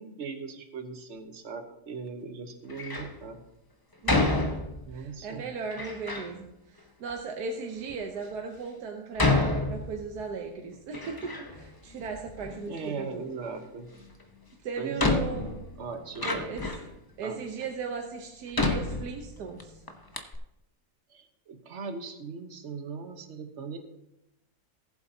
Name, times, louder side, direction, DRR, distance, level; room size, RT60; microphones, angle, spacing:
voice 1, 0.0-3.4 4.8-5.5 12.7-13.9 14.8-15.3 15.8-16.5 17.2-17.4 21.1-23.8, right 4 dB, 50° right, 6 dB, 1.3 m, -39 dB
Door, 2.7-3.2 4.1-5.0 5.7-6.3 7.1-7.2 7.9-8.0 9.2-10.3 10.7-11.7 12.0-12.9 14.2-14.3 15.0-16.9 17.6-17.7 18.5-19.6 19.9-20.0 20.1-20.4, left 2 dB, 20° left, 0.6 m, -29 dB
voice 2, 4.9-13.3 14.6-15.6 16.2-16.6 17.2-19.8, right 5 dB, 75° right, 3 dB, 1.5 m, -37 dB
18.5 x 7.8 x 2.8 m, 0.87 s
omnidirectional pair, 1.7 m